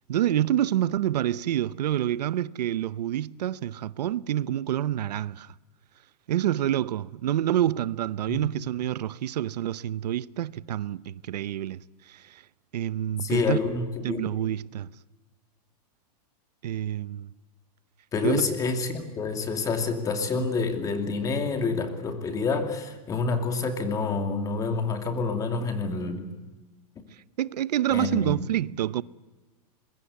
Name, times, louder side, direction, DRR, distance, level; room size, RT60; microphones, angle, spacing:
voice 1, 0.1-5.5 6.3-12.4 12.7-13.6 14.0-14.9 16.6-17.3 18.2-18.4 27.4-29.0, right 12 dB, 90° right, 0.8 m, -27 dB
voice 2, 13.2-14.3 18.1-26.3 27.9-28.4, left 4 dB, 15° left, 2.6 m, -28 dB
25.0 x 22.0 x 8.3 m
supercardioid pair, 160°, 20 cm